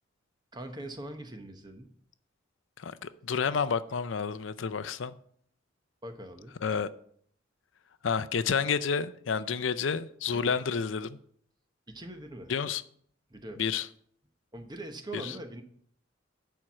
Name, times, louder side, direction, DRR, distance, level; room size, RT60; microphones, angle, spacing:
voice 1, 0.5-1.9 6.0-6.6 10.3-10.6 11.9-12.5 13.3-13.6 14.5-15.6, right 1 dB, 20° right, 1.0 m, -42 dB
voice 2, 2.8-5.2 6.6-6.9 8.0-11.2 12.5-12.8 13.6-13.9 15.1-15.3, left 6 dB, 75° left, 0.5 m, -30 dB
11.0 x 4.5 x 6.1 m
head